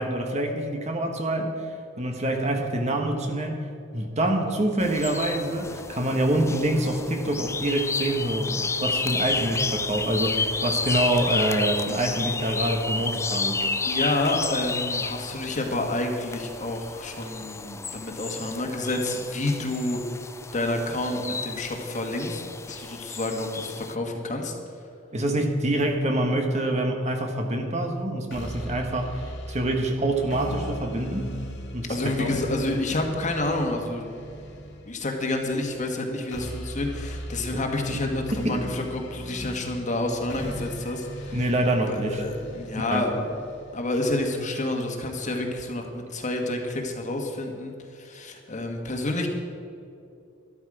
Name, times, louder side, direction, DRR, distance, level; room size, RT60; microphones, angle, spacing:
voice 1, 0.0-1.7 2.0-3.6 3.9-13.7 25.1-31.3 31.7-32.4 38.3-38.6 41.3-42.2 42.8-43.0, right 1 dB, 35° right, 3 dB, 1.5 m, -26 dB
sound 1, 4.8-23.9, left 4 dB, 15° left, 0.4 m, -31 dB
voice 2, 13.8-20.0 20.5-22.4 22.7-24.5 31.9-34.1 34.9-41.4 41.8-43.3 43.7-49.3, left 2 dB, 40° left, 2 dB, 1.7 m, -29 dB
sound 2, 28.3-44.3, equal, 65° left, 2.1 m, -39 dB
12.5 x 12.5 x 5.0 m, 2.6 s
head